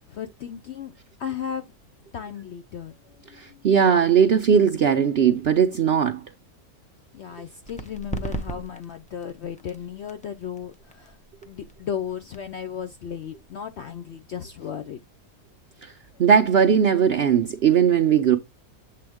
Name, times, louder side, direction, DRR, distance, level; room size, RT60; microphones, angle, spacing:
voice 1, 0.1-0.9 1.2-1.7 2.1-3.0 3.3-3.7 7.1-11.2 11.5-15.0 16.1-16.2, left 8 dB, 70° left, 0.6 m, -35 dB
voice 2, 3.3-6.2 15.8-15.9 16.2-18.4, right 7 dB, 60° right, 0.6 m, -19 dB
sound 1, 7.6-15.0, right 2 dB, 10° left, 0.3 m, -39 dB
7.7 x 3.8 x 3.5 m
omnidirectional pair, 1.6 m